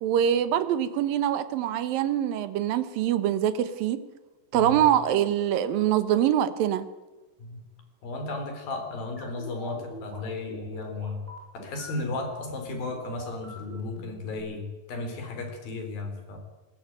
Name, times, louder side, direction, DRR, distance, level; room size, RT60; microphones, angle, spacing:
voice 1, 0.0-4.0 4.5-6.9, right 10 dB, 75° right, 13 dB, 2.8 m, -24 dB
voice 2, 4.5-4.8 7.4-7.7 8.0-11.2 11.5-16.4, left 2 dB, 75° left, 4 dB, 5.6 m, -34 dB
sound 1, 9.2-14.4, equal, 15° right, 7.5 m, -43 dB
20.0 x 19.5 x 9.0 m, 1.1 s
omnidirectional pair, 4.1 m